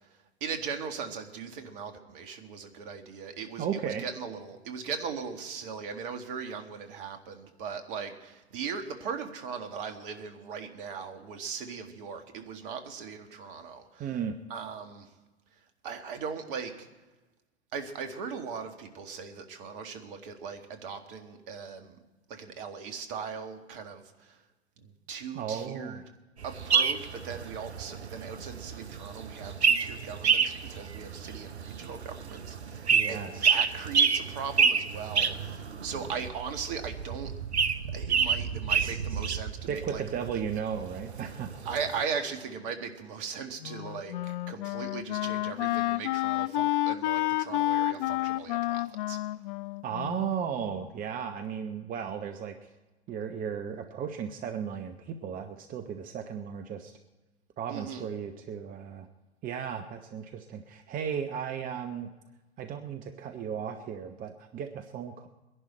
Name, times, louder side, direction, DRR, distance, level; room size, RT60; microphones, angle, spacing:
voice 1, 0.4-14.2 14.5-15.1 15.8-16.9 17.7-22.0 22.3-24.4 24.8-26.0 26.4-37.3 37.9-40.0 41.6-49.2 57.7-58.1, right 6 dB, 55° right, 6 dB, 1.8 m, -39 dB
voice 2, 3.6-4.1 14.0-14.4 25.3-26.0 32.9-33.6 38.8-39.2 39.7-41.5 49.8-52.6 53.1-57.0 57.6-59.1 59.4-62.1 62.6-65.3, right 7 dB, 25° right, 7 dB, 0.8 m, -35 dB
sound 1, 26.4-42.0, right 6 dB, 85° right, 0.8 m, -29 dB
Wind instrument woodwind instrument, 43.6-50.8, left 16 dB, 50° left, 0.5 m, -30 dB
22.0 x 11.0 x 4.4 m, 1.2 s
figure-of-eight pair, 90°, 32 cm